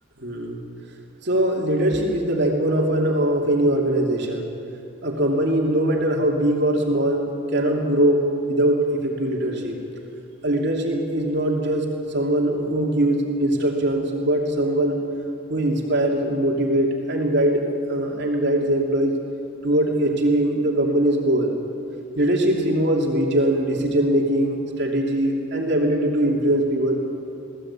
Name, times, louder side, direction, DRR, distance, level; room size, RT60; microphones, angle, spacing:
voice 1, 0.2-0.6 1.2-4.5 5.0-7.2 7.5-9.8 10.4-15.0 15.5-17.6 17.9-19.2 19.6-21.5 22.2-27.0, right 1 dB, 60° right, 0 dB, 2.8 m, -21 dB
22.5 x 16.5 x 8.4 m, 2.6 s
head